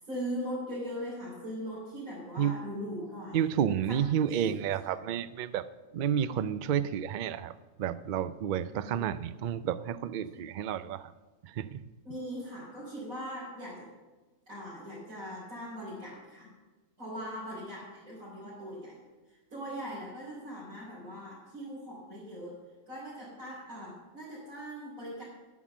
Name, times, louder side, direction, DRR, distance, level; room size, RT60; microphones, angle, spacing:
voice 1, 0.1-3.5 3.9-5.0 8.7-9.1 10.3-10.4 12.0-13.9 14.5-16.5 17.0-19.0 19.5-22.6 22.9-25.2, equal, 80° right, -8 dB, 4.1 m, -40 dB
voice 2, 3.3-5.7 5.9-7.5 7.8-11.1 11.6-11.8, right 9 dB, 60° right, 14 dB, 0.5 m, -30 dB
10.5 x 9.5 x 6.0 m, 1.2 s
omnidirectional pair, 1.4 m